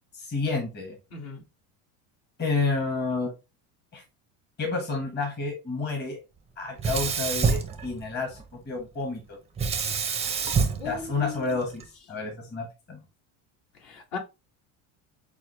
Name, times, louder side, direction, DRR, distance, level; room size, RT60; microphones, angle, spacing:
voice 1, 0.1-1.0 2.4-3.3 3.9-4.0 4.6-6.2 6.6-9.4 10.8-11.8 12.1-13.0, left 3 dB, 25° left, 1.2 m, -30 dB
voice 2, 1.1-1.4 10.8-11.6 13.8-14.2, left 5 dB, 60° left, 1.9 m, -37 dB
Sink (filling or washing), 6.8-8.4 9.6-11.8, right 5 dB, 15° right, 0.5 m, -27 dB
6.1 x 2.1 x 3.0 m
supercardioid pair, 125°, 42 cm